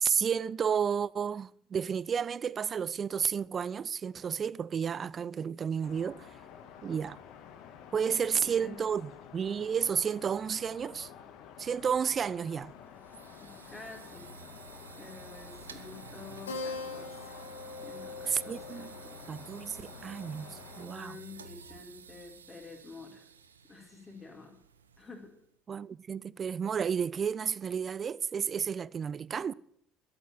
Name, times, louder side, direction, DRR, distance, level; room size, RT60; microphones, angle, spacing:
voice 1, 0.0-6.3 6.8-7.2 7.9-11.1 11.6-12.7 18.3-18.9 19.3-21.2 25.7-29.5, right 7 dB, 35° right, 0.5 m, -32 dB
sound 1, 5.8-20.9, left 8 dB, 60° left, 1.9 m, -51 dB
voice 2, 8.3-8.9 13.4-14.3 15.0-17.3 17.8-18.9 20.4-23.3 23.7-24.6 25.0-25.3, left 3 dB, 25° left, 5.2 m, -49 dB
sound 2, 12.7-25.5, right 6 dB, 80° right, 0.8 m, -52 dB
Keyboard (musical), 16.5-21.4, left 3 dB, 80° left, 2.1 m, -43 dB
13.0 x 8.9 x 9.5 m
figure-of-eight pair, 60°, 0 cm